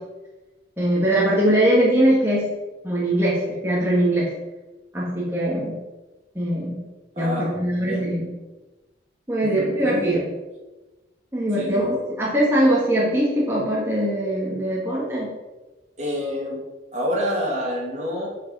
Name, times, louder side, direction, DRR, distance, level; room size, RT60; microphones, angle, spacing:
voice 1, 0.8-2.5 2.8-4.3 4.9-5.8 6.4-6.8 7.2-8.3 9.3-10.3 11.3-15.3, right 1 dB, 15° right, -6 dB, 1.9 m, -21 dB
voice 2, 7.2-7.5 7.8-8.0 9.6-10.1 11.6-11.9 16.0-16.6 16.9-18.3, equal, 40° right, -3 dB, 2.6 m, -27 dB
10.5 x 5.0 x 5.5 m, 1.1 s
head